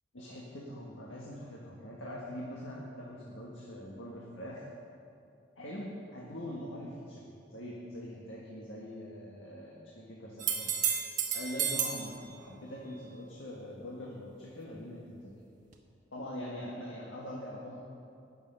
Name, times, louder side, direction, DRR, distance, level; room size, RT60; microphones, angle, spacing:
voice 1, 0.1-4.7 5.6-10.7 11.3-15.3 16.1-17.8, equal, 85° left, -4 dB, 1.7 m, -43 dB
sound 1, 10.4-12.1 15.7-15.8, right 7 dB, 40° right, 1.2 m, -31 dB
19.0 x 7.1 x 5.5 m, 2.5 s
head